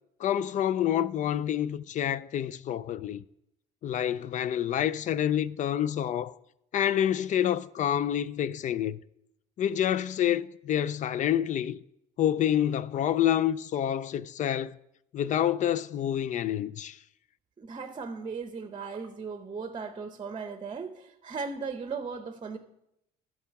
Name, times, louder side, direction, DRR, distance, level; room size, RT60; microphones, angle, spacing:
voice 1, 0.2-3.2 3.8-6.3 6.7-9.0 9.6-11.8 12.2-14.8 15.1-17.0, left 10 dB, 50° left, 0.4 m, -28 dB
voice 2, 17.6-22.6, right 5 dB, 30° right, 0.7 m, -37 dB
12.0 x 4.8 x 5.9 m
cardioid pair, 110°, 17 cm